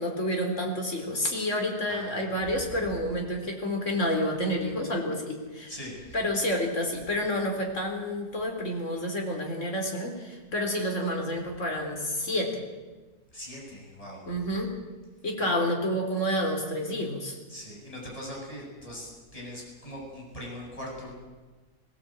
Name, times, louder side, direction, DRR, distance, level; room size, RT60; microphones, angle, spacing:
voice 1, 0.0-5.7 6.1-12.6 14.3-14.7 15.2-17.4, equal, 45° left, 1 dB, 4.4 m, -29 dB
voice 2, 1.9-2.3 5.7-6.2 13.3-14.3 15.4-15.5 17.5-21.1, equal, 20° left, -3 dB, 7.7 m, -41 dB
21.5 x 18.0 x 9.1 m, 1.3 s
omnidirectional pair, 1.7 m